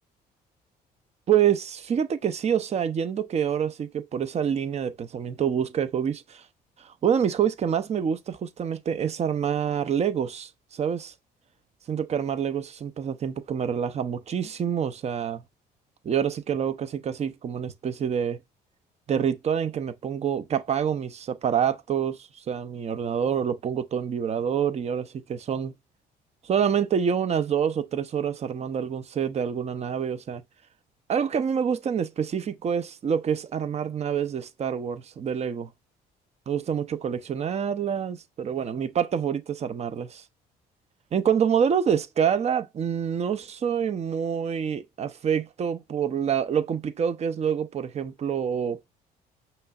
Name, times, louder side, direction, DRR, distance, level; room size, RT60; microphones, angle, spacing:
voice 1, 1.3-6.4 6.8-11.1 11.9-15.4 16.0-18.4 19.1-25.7 26.4-30.4 31.1-35.7 36.5-40.2 41.1-48.8, right 8 dB, 40° right, 0.7 m, -27 dB
5.5 x 3.1 x 2.4 m
cardioid pair, 110°, 17 cm